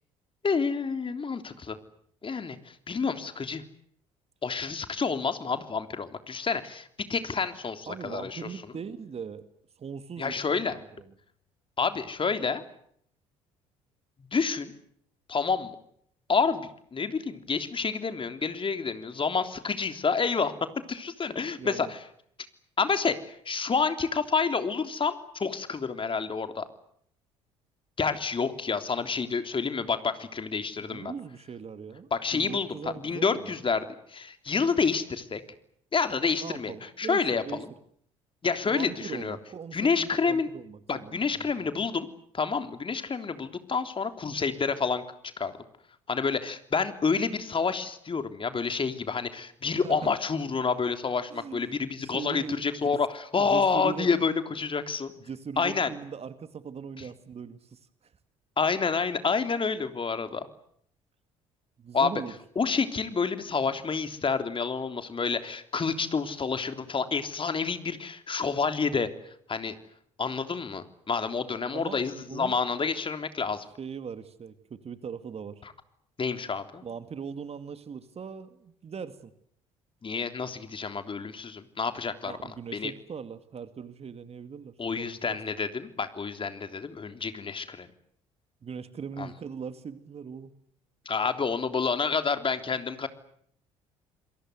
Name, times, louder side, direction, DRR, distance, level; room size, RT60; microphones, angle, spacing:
voice 1, 0.4-1.8 2.2-3.6 4.4-8.4 10.2-10.8 11.8-12.6 14.3-14.7 15.3-15.7 16.3-20.5 20.9-22.0 22.8-26.7 28.0-31.1 32.1-32.7 33.0-35.4 35.9-37.7 38.4-39.4 39.7-40.5 40.9-42.1 42.3-45.0 45.4-45.6 46.1-55.1 55.6-55.9 58.6-60.5 61.9-62.1 62.5-69.7 70.2-73.7 76.2-76.8 80.0-82.3 82.7-82.9 84.8-87.9 89.2-89.3 91.0-93.1, left 5 dB, 35° left, 9 dB, 3.4 m, -29 dB
voice 2, 7.9-9.4 9.8-10.3 10.7-10.9 21.6-21.9 30.8-33.5 36.4-37.6 38.7-41.6 49.7-50.1 51.3-52.5 52.9-53.0 53.4-54.1 55.3-57.8 61.8-62.3 71.7-72.6 73.8-75.6 76.8-79.3 82.3-85.1 88.6-90.5, right 6 dB, 40° right, 11 dB, 2.3 m, -40 dB
28.5 x 23.0 x 8.1 m, 0.67 s
hypercardioid pair, 55°, 16 cm